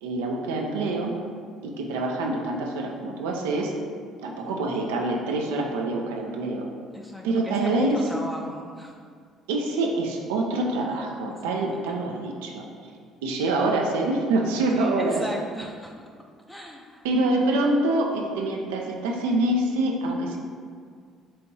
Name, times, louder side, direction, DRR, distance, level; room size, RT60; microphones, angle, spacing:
voice 1, 0.0-1.2 1.6-3.7 4.2-6.7 7.2-8.0 9.5-12.6 13.2-15.2 17.0-20.4, right 2 dB, 85° right, 1 dB, 0.5 m, -25 dB
voice 2, 6.9-8.9 11.4-12.1 14.7-15.9 16.5-17.1, equal, 5° left, 0 dB, 0.4 m, -36 dB
4.3 x 3.5 x 2.7 m, 2.1 s
hypercardioid pair, 65°, 0 cm